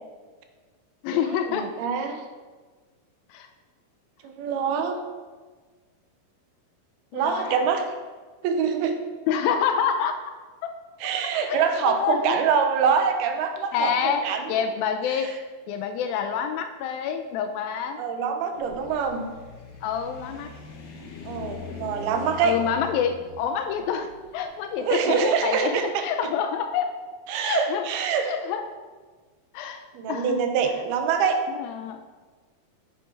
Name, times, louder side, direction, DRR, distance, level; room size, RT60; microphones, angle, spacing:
voice 1, 1.0-1.7 3.3-3.5 7.1-7.6 9.3-10.2 11.5-12.4 13.7-15.4 15.7-18.0 19.8-20.5 22.4-26.9 27.4-27.9 28.2-28.6 29.5-29.8 30.1-30.4 31.5-32.0, left 7 dB, 80° left, 7 dB, 2.3 m, -27 dB
voice 2, 1.6-2.2 4.2-5.0 7.1-7.8 8.4-9.0 11.0-14.5 15.1-15.3 18.0-19.3 21.3-22.6 24.8-26.3 27.3-28.3 29.9-31.4, right 6 dB, 90° right, 6 dB, 2.9 m, -25 dB
sound 1, 18.5-25.7, left 3 dB, 60° left, 2.1 m, -42 dB
9.3 x 8.5 x 4.5 m, 1.4 s
omnidirectional pair, 4.4 m